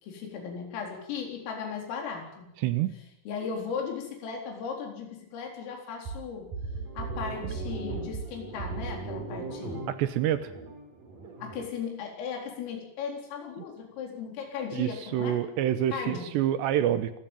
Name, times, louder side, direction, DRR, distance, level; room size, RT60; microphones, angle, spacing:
voice 1, 0.0-2.5 3.3-6.5 7.0-9.8 11.4-15.4 15.9-16.3, left 6 dB, 75° left, 2 dB, 6.6 m, -37 dB
voice 2, 2.6-2.9 9.9-10.5 14.7-17.1, right 11 dB, 75° right, 12 dB, 2.7 m, -27 dB
sound 1, 6.1-11.7, right 3 dB, 45° right, 5.6 m, -37 dB
27.5 x 14.5 x 9.1 m, 0.86 s
omnidirectional pair, 6.0 m